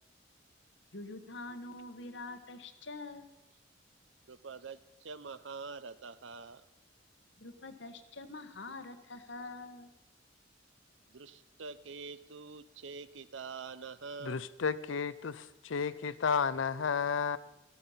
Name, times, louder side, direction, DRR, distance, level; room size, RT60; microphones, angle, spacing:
voice 1, 0.9-3.3 7.4-9.9, left 2 dB, 65° left, 1.2 m, -45 dB
voice 2, 4.3-6.7 11.1-14.4, right 4 dB, 75° right, 0.7 m, -45 dB
voice 3, 14.2-17.4, left 6 dB, 85° left, 0.6 m, -32 dB
14.0 x 12.5 x 5.7 m
head